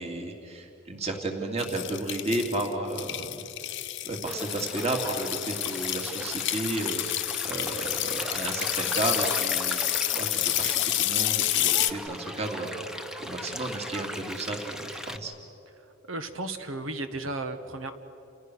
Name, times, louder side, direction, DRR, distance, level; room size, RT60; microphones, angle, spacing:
voice 1, 0.0-3.4 4.0-15.3, right 2 dB, 35° right, 2 dB, 2.8 m, -33 dB
sound 1, 1.6-11.9, left 14 dB, 65° left, 1.1 m, -29 dB
Stream, 4.2-15.2, equal, 5° right, 1.0 m, -38 dB
voice 2, 16.1-17.9, right 2 dB, 75° right, 8 dB, 1.7 m, -34 dB
30.0 x 29.5 x 6.4 m, 2.9 s
head